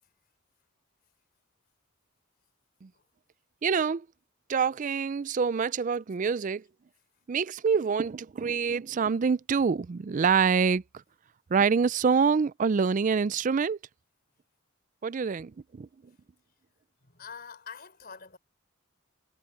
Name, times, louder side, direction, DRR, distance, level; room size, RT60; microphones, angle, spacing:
voice 1, 3.6-4.1 4.5-6.6 7.3-10.8 11.5-13.8 15.0-15.9, right 5 dB, 40° right, 0.3 m, -26 dB
voice 2, 17.0-18.4, left 6 dB, 45° left, 4.1 m, -45 dB
head